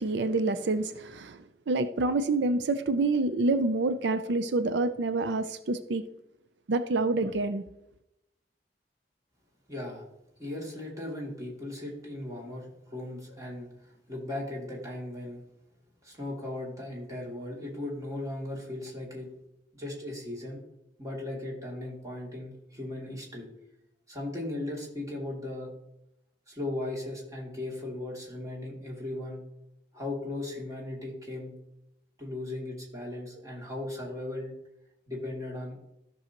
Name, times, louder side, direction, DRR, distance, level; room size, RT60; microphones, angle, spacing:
voice 1, 0.0-6.0 6.7-7.6, right 2 dB, 90° right, 0.5 m, -27 dB
voice 2, 9.7-10.0 10.4-15.4 16.0-19.3 19.7-20.6 21.0-23.5 24.1-25.7 26.5-29.4 29.9-31.5 32.2-34.5 35.1-35.8, left 1 dB, 20° right, 2.7 m, -37 dB
14.0 x 6.2 x 3.0 m
head